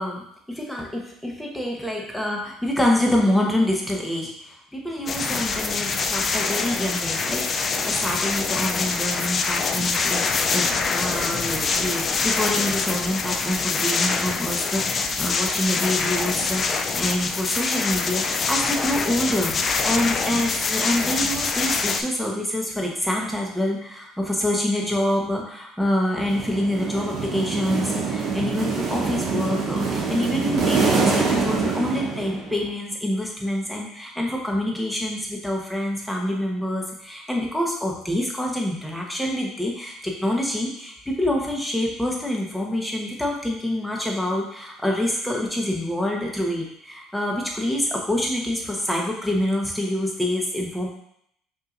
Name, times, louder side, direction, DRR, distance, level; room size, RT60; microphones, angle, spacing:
voice 1, 0.0-10.2 10.5-50.9, left 1 dB, 5° left, -1 dB, 1.0 m, -26 dB
sound 1, 5.1-22.0, left 4 dB, 40° left, 0.4 m, -25 dB
sound 2, 26.2-32.7, right 4 dB, 60° right, 1.0 m, -25 dB
5.4 x 2.8 x 2.5 m, 0.72 s
supercardioid pair, 85°, 0 cm